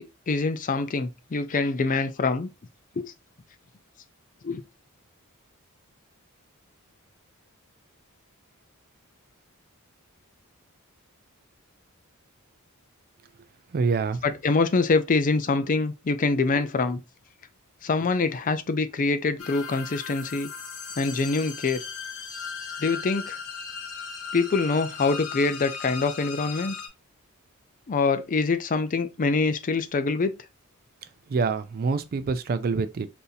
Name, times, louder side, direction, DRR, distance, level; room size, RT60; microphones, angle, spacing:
voice 1, 0.0-2.5 3.0-3.1 4.4-4.6 14.2-17.0 17.8-20.5 21.0-21.8 22.8-23.4 24.3-26.7 27.9-30.3, left 3 dB, 35° left, 0.4 m, -25 dB
voice 2, 13.7-14.2 31.3-33.1, right 4 dB, 40° right, 0.4 m, -26 dB
sound 1, 19.4-26.9, left 6 dB, 80° left, 1.1 m, -37 dB
4.0 x 2.7 x 2.7 m
head